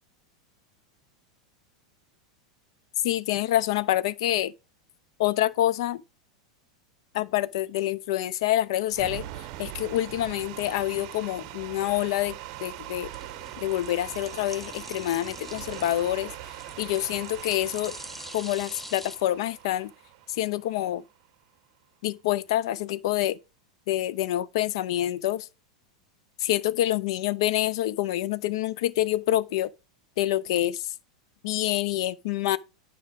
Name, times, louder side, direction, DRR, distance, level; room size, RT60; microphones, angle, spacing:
voice 1, 3.0-4.5 5.2-6.0 7.1-9.2 9.6-12.3 12.6-13.1 13.6-16.3 16.8-18.0 18.3-19.9 20.3-21.0 22.0-23.4 23.9-25.5 26.4-29.7 30.2-30.9 31.4-32.6, left 14 dB, 60° left, 0.5 m, -27 dB
sound 1, 8.9-21.1, right 14 dB, 50° right, 0.6 m, -41 dB
sound 2, 10.4-19.2, left 1 dB, 5° left, 0.7 m, -46 dB
9.4 x 4.8 x 3.5 m
hypercardioid pair, 90°, 3 cm